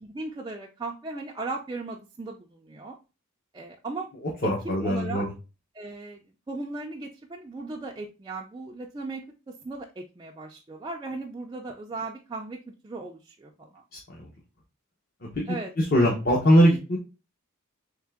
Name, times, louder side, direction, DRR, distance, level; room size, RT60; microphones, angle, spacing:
voice 1, 0.0-3.0 3.5-4.1 4.4-5.3 5.7-6.2 6.5-13.8 15.5-15.7, right 3 dB, 20° right, -1 dB, 0.4 m, -37 dB
voice 2, 4.4-5.3 14.2-14.3 15.2-17.0, equal, 45° left, -3 dB, 0.9 m, -22 dB
3.6 x 3.2 x 3.4 m, 0.30 s
head